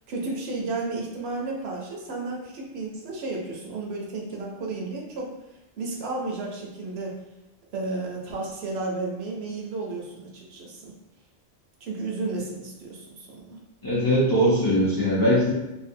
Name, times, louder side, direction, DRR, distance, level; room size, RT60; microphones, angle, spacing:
voice 1, 0.1-5.3 5.8-7.2 7.7-10.9 11.8-13.6, right 3 dB, 65° right, -1 dB, 0.7 m, -32 dB
voice 2, 13.8-15.5, equal, 30° left, -8 dB, 0.4 m, -21 dB
2.6 x 2.1 x 2.5 m, 0.93 s
omnidirectional pair, 1.3 m